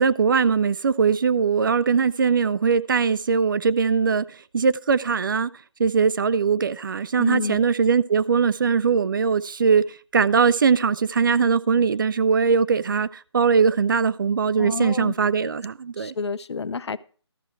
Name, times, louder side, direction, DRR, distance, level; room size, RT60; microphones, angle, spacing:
voice 1, 0.0-4.3 4.5-5.5 5.8-9.8 10.1-16.1, right 5 dB, 45° right, 0.4 m, -21 dB
voice 2, 7.2-7.7 14.6-15.1 16.0-17.0, left 5 dB, 70° left, 0.6 m, -29 dB
13.0 x 6.8 x 4.5 m
figure-of-eight pair, 155°, 15 cm